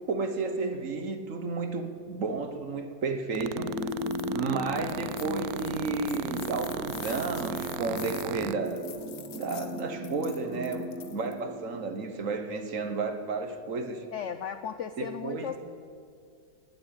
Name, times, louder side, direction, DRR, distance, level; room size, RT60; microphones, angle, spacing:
voice 1, 0.1-3.7 4.3-8.9 9.3-14.0 15.0-15.6, right 4 dB, 50° right, 7 dB, 1.4 m, -32 dB
sound 1, 3.3-8.6, right 13 dB, 70° right, 0.9 m, -36 dB
sound 2, 3.3-12.1, left 2 dB, 85° right, 3.2 m, -37 dB
sound 3, 3.8-4.3 4.7-11.4, left 10 dB, 60° left, 1.2 m, -47 dB
voice 2, 14.1-15.6, left 8 dB, 80° left, 11 dB, 0.6 m, -35 dB
19.5 x 8.1 x 8.8 m, 2.3 s
omnidirectional pair, 1.9 m